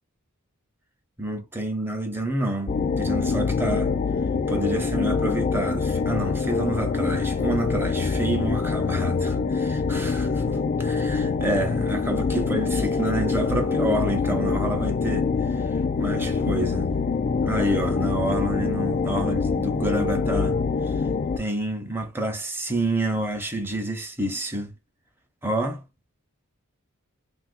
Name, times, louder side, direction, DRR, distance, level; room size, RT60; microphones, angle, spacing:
voice 1, 1.2-3.9 4.5-15.6 16.0-16.9 17.4-20.6 20.9-21.0 21.4-24.7 25.4-25.8, right 1 dB, 10° right, 0.6 m, -28 dB
sound 1, 2.7-21.4, left 4 dB, 35° left, 0.3 m, -25 dB
3.3 x 2.4 x 2.5 m
head